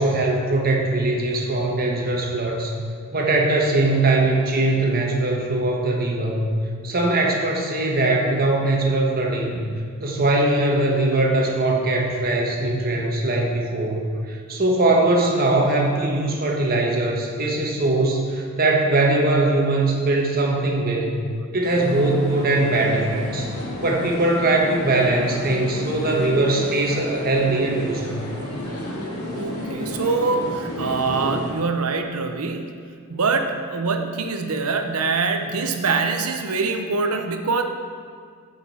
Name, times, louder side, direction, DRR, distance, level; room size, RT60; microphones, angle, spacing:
voice 1, 0.0-2.7 3.1-6.5 6.8-9.6 10.0-21.2 21.5-23.5 23.8-28.1, right 2 dB, 45° right, 0 dB, 1.3 m, -21 dB
sound 1, 21.6-31.5, equal, 75° left, 2.2 m, -32 dB
voice 2, 29.3-32.7 33.1-37.6, right 4 dB, 90° right, 6 dB, 0.8 m, -24 dB
13.5 x 5.2 x 4.3 m, 2.2 s
head